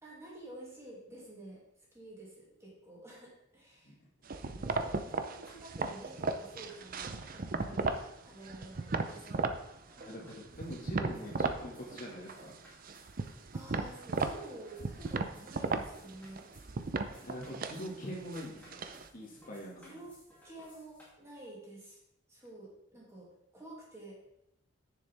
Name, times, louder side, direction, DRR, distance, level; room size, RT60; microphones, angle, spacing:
voice 1, 0.0-1.6 1.9-4.0 4.5-9.6 13.2-16.5 19.8-20.2 20.4-22.0 22.3-24.1, right 1 dB, 15° right, -5 dB, 2.5 m, -50 dB
sound 1, 4.3-8.1 8.4-9.6 10.0-11.6 11.9-12.6 12.8-19.1, right 3 dB, 45° right, 0.6 m, -35 dB
sound 2, 5.1-21.1, left 1 dB, 10° left, 2.6 m, -62 dB
voice 2, 10.0-12.5 17.2-18.8 19.1-20.0, equal, 45° left, -2 dB, 1.9 m, -43 dB
10.0 x 6.8 x 3.5 m, 0.81 s
head